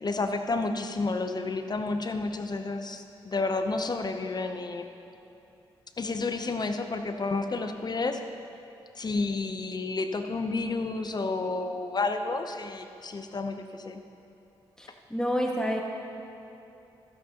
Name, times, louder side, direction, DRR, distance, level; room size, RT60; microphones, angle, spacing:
voice 1, 0.0-4.9 6.0-8.2 9.0-14.0, left 3 dB, 40° left, 7 dB, 0.8 m, -30 dB
voice 2, 14.8-15.8, equal, 5° left, -1 dB, 1.8 m, -29 dB
12.5 x 9.5 x 3.0 m, 2.9 s
supercardioid pair, 50°, 11 cm